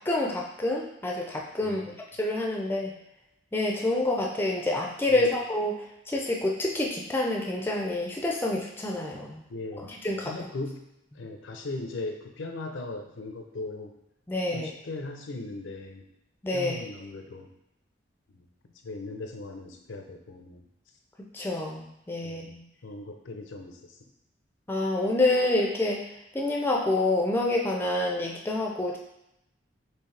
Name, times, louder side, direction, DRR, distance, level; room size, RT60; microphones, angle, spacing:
voice 1, 0.0-1.9 2.2-2.9 3.5-9.4 9.9-10.3 14.3-14.7 16.4-16.8 21.3-22.6 24.7-26.1 26.3-29.0, left 2 dB, 10° left, -1 dB, 0.4 m, -27 dB
voice 2, 9.5-9.9 10.2-10.8 11.2-13.9 14.5-16.1 16.5-17.5 18.8-20.6 22.2-22.5 22.8-23.9, left 2 dB, 85° left, 4 dB, 0.6 m, -38 dB
4.6 x 3.1 x 3.2 m, 0.86 s
head